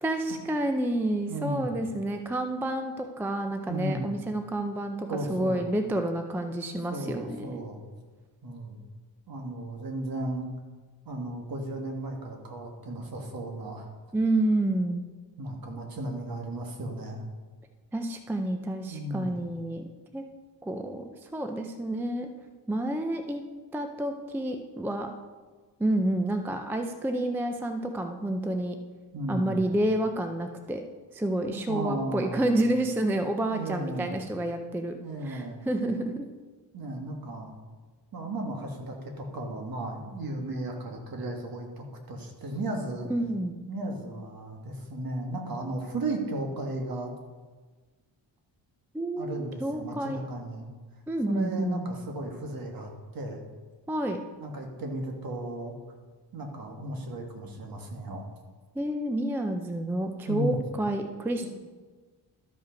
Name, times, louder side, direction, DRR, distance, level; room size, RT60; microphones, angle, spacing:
voice 1, 0.0-5.0 5.3-7.6 14.1-15.0 17.9-19.8 20.1-20.2 20.6-22.3 22.7-23.4 23.7-25.1 25.8-28.8 29.3-30.8 31.1-36.3 43.1-43.5 48.9-50.2 51.1-51.8 53.9-54.2 58.8-61.5, right 1 dB, 5° right, 6 dB, 0.3 m, -29 dB
voice 2, 1.3-1.8 3.7-4.1 5.1-5.7 6.9-7.8 8.4-8.8 9.3-10.5 11.0-13.9 15.4-17.2 18.9-19.3 29.1-29.6 31.7-32.6 33.5-34.2 35.0-35.6 36.7-37.5 38.1-43.1 43.7-47.1 49.2-50.7 51.2-53.4 54.4-55.8 56.3-58.2 60.3-60.6, right 1 dB, 55° right, 3 dB, 1.5 m, -35 dB
12.5 x 5.3 x 5.1 m, 1.4 s
wide cardioid pair, 155°, 43 cm